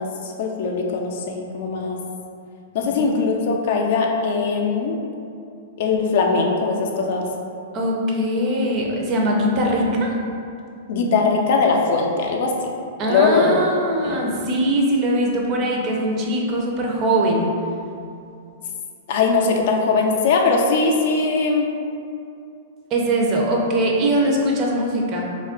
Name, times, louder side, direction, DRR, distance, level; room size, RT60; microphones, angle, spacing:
voice 1, 0.0-2.0 2.7-5.0 5.8-7.3 10.9-12.7 13.1-13.6 14.0-14.2 19.1-21.7, left 4 dB, 60° left, 1 dB, 0.4 m, -20 dB
voice 2, 7.7-10.1 13.0-17.5 22.9-25.2, right 1 dB, 35° right, -1 dB, 0.5 m, -21 dB
2.3 x 2.2 x 3.6 m, 2.5 s
hypercardioid pair, 125°, 0 cm